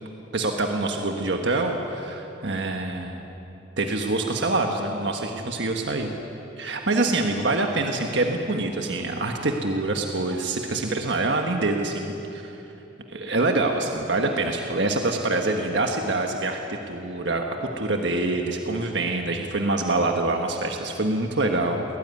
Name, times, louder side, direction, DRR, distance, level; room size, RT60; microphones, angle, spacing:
voice 1, 0.3-3.2 3.8-6.1 6.6-12.5 13.1-21.8, right 2 dB, 65° right, 3 dB, 1.5 m, -25 dB
22.5 x 18.5 x 9.6 m, 2.9 s
head